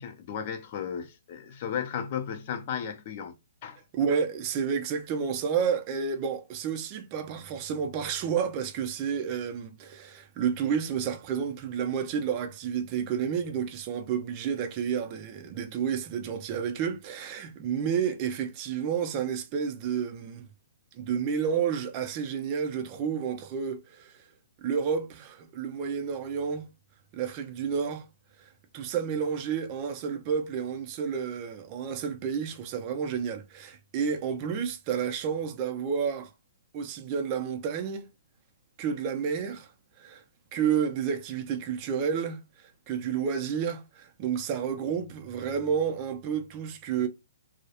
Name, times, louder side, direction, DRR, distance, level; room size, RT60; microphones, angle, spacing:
voice 1, 0.0-3.4 3.6-3.8, left 8 dB, 45° left, 0.5 m, -34 dB
voice 2, 3.9-20.5 20.9-24.2 24.6-26.7 27.1-28.0 28.4-36.3 36.7-38.1 38.8-39.7 40.0-40.2 40.5-47.1, right 7 dB, 35° right, 0.5 m, -30 dB
2.3 x 2.0 x 2.8 m
hypercardioid pair, 135°, 0 cm